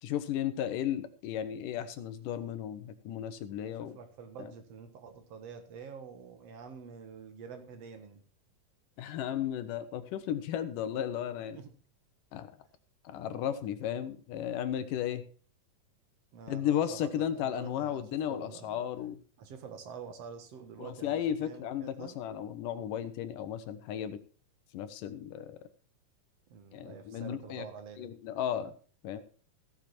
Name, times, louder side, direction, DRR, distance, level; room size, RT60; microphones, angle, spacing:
voice 1, 0.0-4.0 4.4-4.5 9.0-11.6 12.3-12.5 13.0-15.2 16.5-19.2 20.8-24.2 24.7-25.6 26.7-27.7 28.0-28.7 29.0-29.2, left 10 dB, 75° left, 11 dB, 2.5 m, -34 dB
voice 2, 3.6-8.2 11.5-11.7 16.3-18.8 19.4-22.2 26.5-28.1, right 6 dB, 55° right, 7 dB, 2.4 m, -47 dB
15.0 x 7.3 x 4.4 m, 0.41 s
omnidirectional pair, 3.9 m